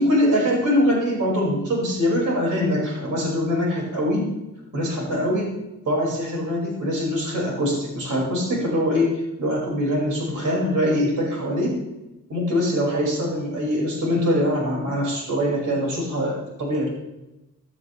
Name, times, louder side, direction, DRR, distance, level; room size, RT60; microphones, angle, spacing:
voice 1, 0.0-4.3 4.7-5.5 5.9-11.8 12.3-16.9, equal, 80° right, -3 dB, 5.6 m, -23 dB
16.0 x 12.0 x 3.4 m, 0.97 s
wide cardioid pair, 165°, 31 cm